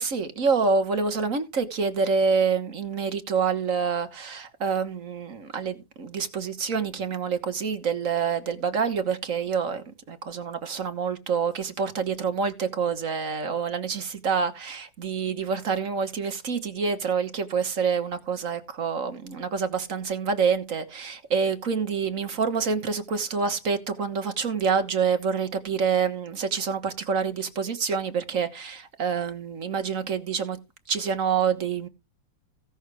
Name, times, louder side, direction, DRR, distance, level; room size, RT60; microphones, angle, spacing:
voice 1, 0.0-30.6 30.9-31.9, right 5 dB, 45° right, 1.7 m, -27 dB
16.5 x 6.4 x 3.5 m
omnidirectional pair, 2.1 m